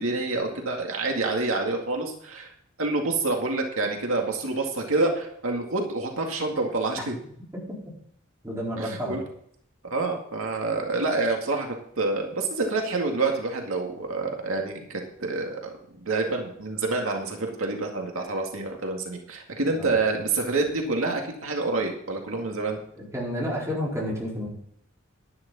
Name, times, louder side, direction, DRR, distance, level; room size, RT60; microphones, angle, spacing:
voice 1, 0.0-2.5 2.8-7.2 8.8-9.2 9.9-11.7 12.0-22.8, right 3 dB, 80° right, 2 dB, 2.1 m, -27 dB
voice 2, 8.4-9.2 19.8-19.9 23.0-24.5, equal, 15° right, -4 dB, 4.4 m, -30 dB
11.0 x 11.0 x 4.2 m, 0.67 s
head